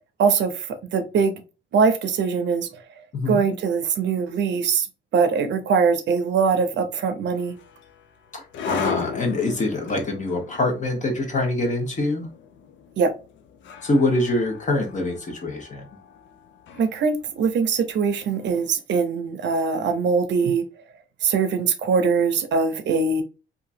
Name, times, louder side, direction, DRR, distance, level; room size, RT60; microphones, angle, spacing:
voice 1, 0.2-0.7 0.9-1.4 1.7-2.7 3.3-4.9 5.1-7.5 13.0-13.1 16.7-20.6 21.2-23.2, right 5 dB, 65° right, 0.7 m, -22 dB
sound 1, 7.4-18.5, left 7 dB, 70° left, 0.5 m, -37 dB
voice 2, 8.3-12.3 13.8-15.8, left 2 dB, 40° left, 1.2 m, -24 dB
2.8 x 2.5 x 2.6 m
cardioid pair, 90°, 20 cm